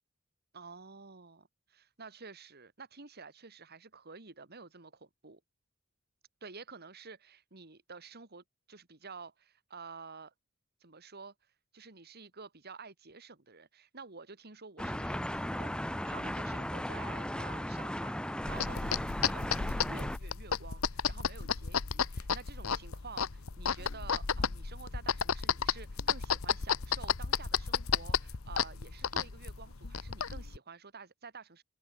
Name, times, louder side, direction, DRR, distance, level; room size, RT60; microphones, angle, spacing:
voice 1, 0.5-5.4 6.4-10.3 10.8-11.3 11.7-31.6, right 4 dB, 50° right, 2.6 m, -50 dB
sound 1, 14.8-20.2, equal, 5° left, 1.2 m, -36 dB
sound 2, 18.4-30.6, left 6 dB, 80° left, 1.1 m, -33 dB
head